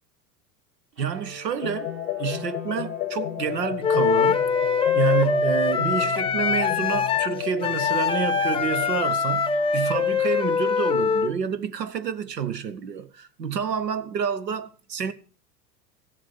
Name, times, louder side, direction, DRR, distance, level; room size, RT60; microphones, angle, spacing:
sound 1, 0.9-11.1, right 5 dB, 30° right, 3.9 m, -48 dB
voice 1, 1.0-1.9 2.2-4.5 4.9-15.1, right 7 dB, 75° right, 1.3 m, -28 dB
sound 2, 1.6-9.0, left 15 dB, 60° left, 0.7 m, -32 dB
Wind instrument woodwind instrument, 3.8-11.3, left 5 dB, 10° left, 0.9 m, -23 dB
15.0 x 7.6 x 6.5 m
figure-of-eight pair, 85°, 49 cm